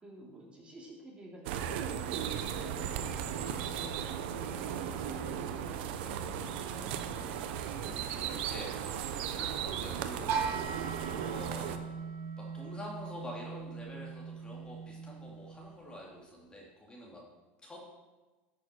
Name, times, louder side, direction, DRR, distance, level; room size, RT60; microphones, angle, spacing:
voice 1, 0.0-3.4 3.7-3.9 4.3-7.3, right 1 dB, 20° right, -3 dB, 3.0 m, -50 dB
sound 1, 1.4-11.8, right 9 dB, 75° right, 0.8 m, -36 dB
voice 2, 7.8-11.8 12.4-17.2 17.6-17.8, left 1 dB, 15° left, -3 dB, 2.6 m, -47 dB
sound 2, 10.3-16.1, right 6 dB, 55° right, 1.4 m, -39 dB
13.0 x 6.6 x 4.4 m, 1.3 s
supercardioid pair, 105°, 6 cm